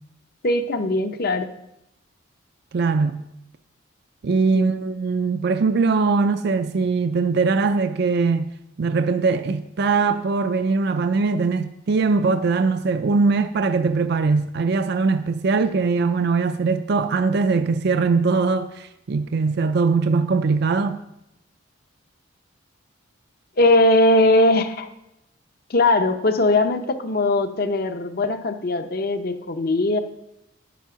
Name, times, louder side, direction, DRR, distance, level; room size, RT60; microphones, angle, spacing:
voice 1, 0.4-1.5 4.5-4.7 23.6-24.9 25.7-30.0, left 2 dB, 45° left, 0.7 m, -20 dB
voice 2, 2.7-3.2 4.2-8.5 8.8-21.0, right 4 dB, 55° right, 0.4 m, -21 dB
9.9 x 7.2 x 5.8 m
head